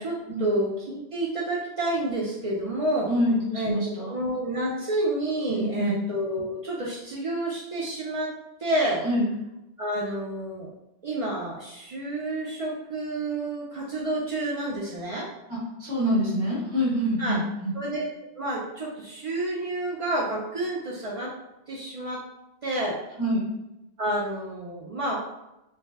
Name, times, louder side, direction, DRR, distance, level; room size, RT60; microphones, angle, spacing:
voice 1, 0.0-3.1 3.5-3.7 4.1-8.3 8.6-9.0 9.8-10.7 11.0-15.3 17.2-17.4 17.7-18.0 18.4-21.3 21.7-22.2 22.6-23.0 24.0-25.2, right 1 dB, 65° right, -5 dB, 0.3 m, -29 dB
voice 2, 3.1-4.2 5.5-6.0 9.0-9.3 15.8-17.7 23.2-23.4, equal, 25° right, -7 dB, 1.0 m, -25 dB
2.5 x 2.1 x 3.3 m, 0.93 s
omnidirectional pair, 1.2 m